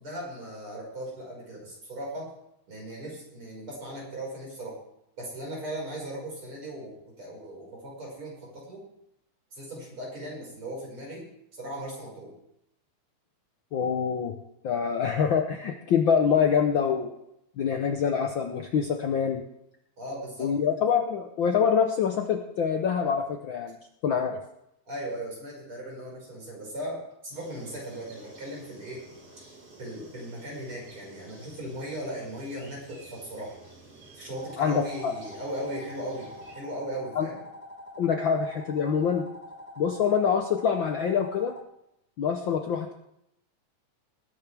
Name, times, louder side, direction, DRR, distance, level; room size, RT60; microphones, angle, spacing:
voice 1, 0.0-2.3 2.7-4.8 5.2-8.8 9.5-11.3 11.5-12.3 20.0-20.6 24.9-29.0 29.8-33.6 34.2-36.3 36.5-37.4, right 1 dB, 40° right, -3 dB, 6.1 m, -38 dB
voice 2, 13.7-14.3 14.6-17.1 17.6-19.4 20.4-23.8 24.0-24.4 34.6-35.1 37.2-37.3 38.0-39.2 39.8-41.5 42.2-42.9, left 7 dB, 85° left, 4 dB, 1.0 m, -25 dB
sound 1, 27.3-36.5, right 3 dB, 85° right, 6.4 m, -51 dB
sound 2, 34.3-41.6, left 1 dB, 5° right, 0.8 m, -45 dB
20.5 x 10.5 x 3.5 m, 0.80 s
omnidirectional pair, 3.5 m